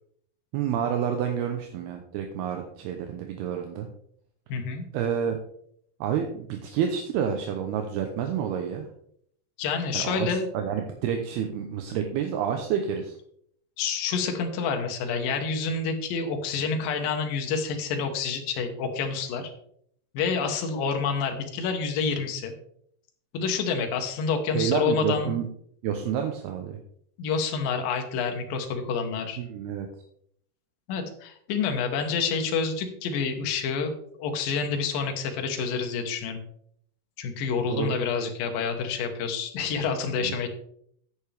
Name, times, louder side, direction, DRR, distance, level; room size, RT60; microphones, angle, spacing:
voice 1, 0.5-3.9 4.9-5.4 6.0-8.9 9.9-10.3 10.5-13.2 24.5-25.5 25.8-26.8 29.4-29.9 37.7-37.9 40.2-40.3, right 8 dB, 75° right, 5 dB, 2.8 m, -29 dB
voice 2, 4.5-4.8 9.6-10.5 13.8-19.5 20.1-22.5 23.3-25.4 27.2-29.4 30.9-36.4 37.2-40.5, left 5 dB, 65° left, 4 dB, 2.8 m, -28 dB
10.5 x 9.6 x 3.5 m, 0.66 s
omnidirectional pair, 4.9 m